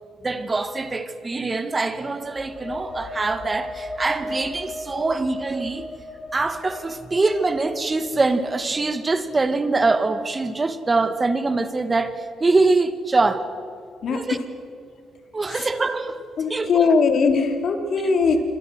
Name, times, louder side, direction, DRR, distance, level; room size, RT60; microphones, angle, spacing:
voice 1, 0.2-5.9 6.3-13.5 14.1-14.4 15.3-16.2 16.5-16.9, right 3 dB, 25° right, 2.2 m, -23 dB
sound 1, 2.2-9.8, left 1 dB, 40° left, 5.8 m, -37 dB
voice 2, 14.0-14.4 15.5-15.7 16.4-18.4, left 4 dB, 60° left, 3.8 m, -20 dB
28.5 x 25.0 x 6.4 m
cardioid pair, 90°, 0 cm